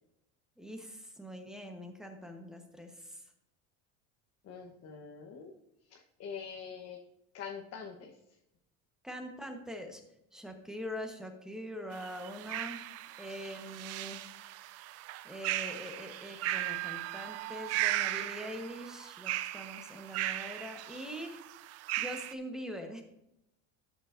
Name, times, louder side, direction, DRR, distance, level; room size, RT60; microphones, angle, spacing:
voice 1, 0.6-3.2 9.0-10.0 10.3-12.8 13.2-14.2 15.2-21.4 22.0-23.0, equal, ahead, 4 dB, 1.1 m, -43 dB
voice 2, 4.4-5.5 5.9-7.0 7.3-8.1, left 6 dB, 50° left, -1 dB, 1.1 m, -44 dB
sound 1, 11.9-22.3, right 14 dB, 50° right, 0.4 m, -37 dB
13.0 x 7.0 x 2.6 m, 0.85 s
cardioid pair, 135°, 34 cm